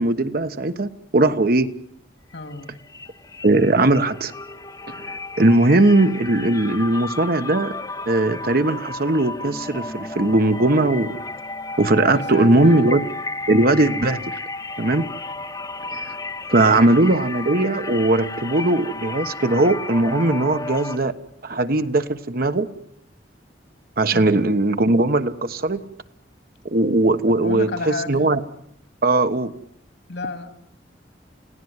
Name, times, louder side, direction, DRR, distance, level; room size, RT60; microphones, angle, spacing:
voice 1, 0.0-1.7 3.4-4.3 4.9-7.7 8.1-11.2 11.8-13.0 13.5-14.4 14.8-15.1 15.9-16.2 16.5-21.1 21.4-22.7 24.0-25.8 26.6-28.4 29.0-29.5, right 2 dB, 55° right, 10 dB, 1.3 m, -19 dB
voice 2, 2.3-2.8 12.1-12.9 24.1-24.5 27.3-28.2 30.1-30.5, left 3 dB, 75° left, 8 dB, 3.0 m, -32 dB
sound 1, 2.3-2.6 2.9-21.0, left 3 dB, 20° left, 1.0 m, -33 dB
29.0 x 17.5 x 9.7 m, 0.75 s
head